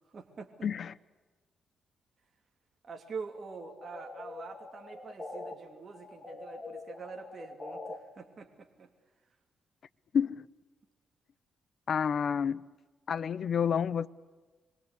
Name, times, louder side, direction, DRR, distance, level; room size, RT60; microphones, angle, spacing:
voice 1, 0.1-0.7 2.8-8.9, right 4 dB, 40° right, 2.9 m, -45 dB
voice 2, 0.6-0.9 10.1-10.4 11.9-12.6 13.1-14.1, left 7 dB, 55° left, 0.9 m, -29 dB
sound 1, 3.5-5.5 5.9-8.0, left 2 dB, 20° left, 3.0 m, -44 dB
26.5 x 23.5 x 8.2 m
cardioid pair, 110°, 0 cm